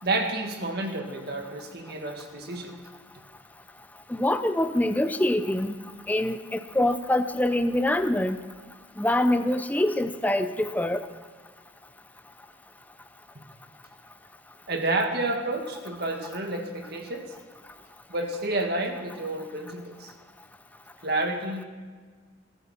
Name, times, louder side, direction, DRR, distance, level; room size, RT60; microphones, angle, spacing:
voice 1, 0.0-2.8 14.7-17.3 18.1-20.1 21.0-21.7, right 2 dB, 55° right, 3 dB, 2.0 m, -30 dB
voice 2, 4.1-5.7 6.1-8.4 9.0-11.1, left 1 dB, 10° left, 9 dB, 0.6 m, -25 dB
22.0 x 13.5 x 4.4 m, 1.5 s
head